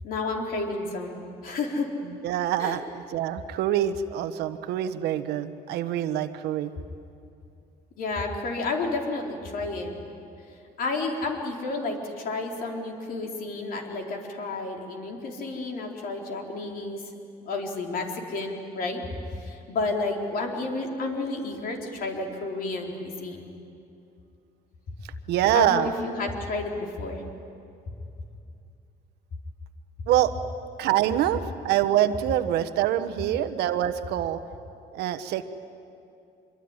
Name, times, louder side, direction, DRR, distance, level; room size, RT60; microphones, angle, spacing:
voice 1, 0.0-1.9 2.6-2.7 8.0-10.0 10.8-17.0 17.5-19.0 19.4-23.5 25.5-27.2, left 3 dB, 60° left, 2 dB, 3.9 m, -31 dB
voice 2, 2.2-6.7 25.3-25.9 30.1-30.3 30.8-34.4 34.9-35.4, right 12 dB, 90° right, 10 dB, 1.2 m, -25 dB
25.0 x 23.0 x 9.8 m, 2.6 s
cardioid pair, 120°, 17 cm